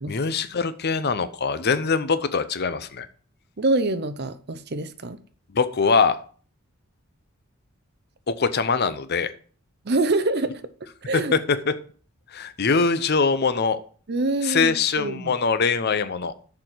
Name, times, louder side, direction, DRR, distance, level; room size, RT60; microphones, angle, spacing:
voice 1, 0.0-3.1 5.5-6.2 8.3-9.3 11.1-11.7 12.3-13.8 14.4-16.3, left 5 dB, 50° left, 13 dB, 0.6 m, -23 dB
voice 2, 3.6-5.2 9.8-10.6 11.0-11.3 14.1-15.3, right 2 dB, 50° right, 12 dB, 0.7 m, -25 dB
6.9 x 5.8 x 6.2 m, 0.44 s
head